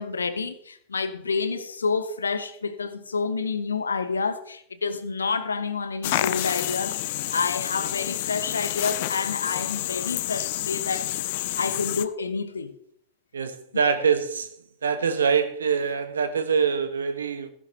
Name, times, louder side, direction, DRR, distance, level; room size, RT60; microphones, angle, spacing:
voice 1, 0.0-7.0 7.3-11.1 11.6-12.8, left 4 dB, 75° left, 1.0 m, -28 dB
sound 1, 6.0-12.1, left 15 dB, 50° left, 0.6 m, -29 dB
voice 2, 13.3-14.5 14.8-17.5, right 6 dB, 70° right, 1.2 m, -24 dB
14.5 x 11.0 x 3.3 m
figure-of-eight pair, 90°, 0 cm